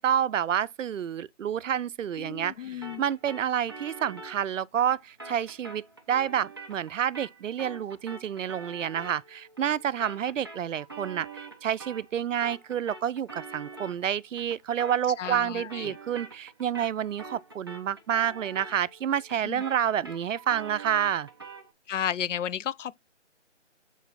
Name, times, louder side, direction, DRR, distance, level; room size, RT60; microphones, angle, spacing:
voice 1, 0.0-21.3, right 9 dB, 90° right, 0.5 m, -29 dB
voice 2, 2.2-3.0 15.2-16.0 19.4-19.6 21.9-23.0, left 9 dB, 80° left, 0.5 m, -33 dB
sound 1, 2.8-12.2 12.4-21.7, right 3 dB, 20° right, 0.6 m, -45 dB
8.3 x 4.0 x 4.1 m
hypercardioid pair, 170°, 37 cm